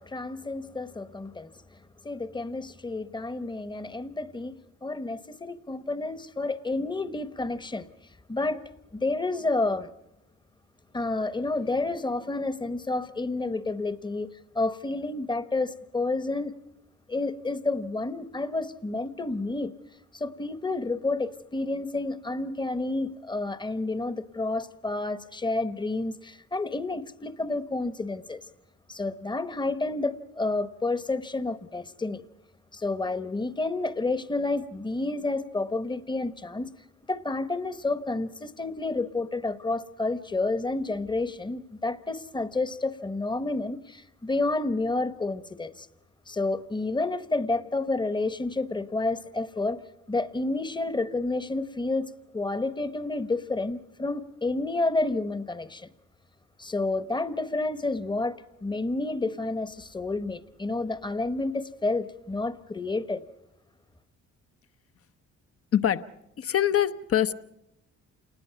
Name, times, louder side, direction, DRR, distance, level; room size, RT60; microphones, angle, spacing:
voice 1, 0.0-1.5 2.0-4.5 4.8-7.9 8.3-8.6 8.9-9.9 10.9-16.5 17.1-19.7 20.1-28.4 28.9-32.2 32.7-36.7 37.1-45.9 46.3-49.8 50.1-55.9 56.6-63.2, left 2 dB, 15° left, 1.0 m, -30 dB
voice 2, 65.7-66.1 66.4-67.3, left 10 dB, 50° left, 0.9 m, -24 dB
28.0 x 19.5 x 5.8 m
cardioid pair, 90°, 30 cm